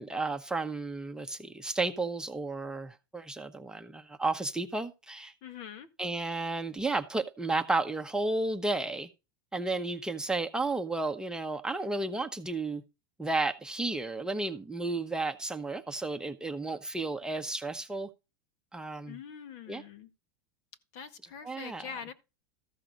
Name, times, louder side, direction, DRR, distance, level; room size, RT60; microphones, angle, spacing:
voice 1, 0.0-5.3 6.0-9.1 9.5-12.8 13.2-18.1 18.7-19.2 19.7-19.8 21.4-21.9, right 2 dB, 5° right, 0.9 m, -32 dB
voice 2, 5.4-5.9 19.1-20.1 20.9-22.1, left 7 dB, 60° left, 1.8 m, -44 dB
14.0 x 5.7 x 5.2 m
supercardioid pair, 130°, 11 cm